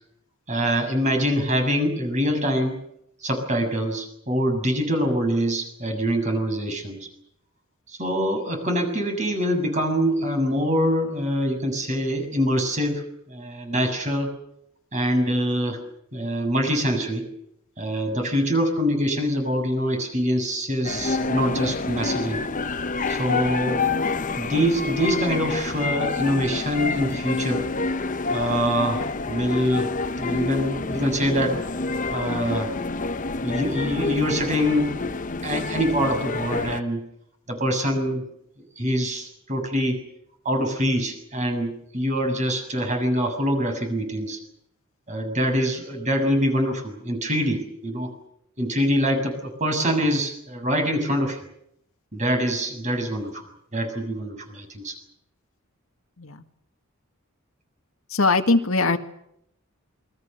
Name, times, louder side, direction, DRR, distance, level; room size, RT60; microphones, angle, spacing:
voice 1, 0.5-2.8 3.2-7.1 7.9-13.0 13.3-14.3 14.9-15.8 16.1-17.3 17.8-22.4 23.1-23.8 24.3-27.6 28.3-29.9 30.2-31.6 32.1-32.7 33.4-35.0 35.4-37.0 37.5-38.2 38.8-40.0 40.4-44.4 45.1-48.1 48.6-51.4 52.1-53.4 53.7-54.9, equal, 35° right, 5 dB, 7.0 m, -24 dB
sound 1, 20.8-36.8, left 3 dB, 40° left, 0.9 m, -28 dB
voice 2, 58.1-59.0, left 3 dB, 80° left, 6 dB, 1.9 m, -21 dB
28.0 x 23.0 x 6.9 m, 0.75 s
head